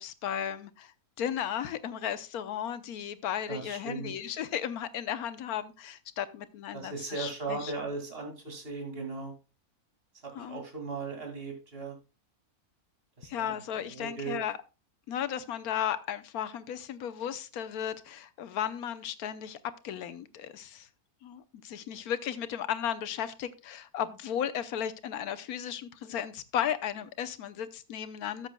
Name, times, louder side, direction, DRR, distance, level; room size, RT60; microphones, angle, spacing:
voice 1, 0.0-7.9 10.3-10.6 13.3-14.6 15.1-19.6 19.8-20.9 21.2-28.5, left 9 dB, 80° left, 1.2 m, -35 dB
voice 2, 3.5-4.1 6.7-9.3 10.4-11.9 13.2-13.6 13.9-14.4, right 4 dB, 40° right, 2.6 m, -37 dB
13.5 x 7.5 x 2.2 m
omnidirectional pair, 1.6 m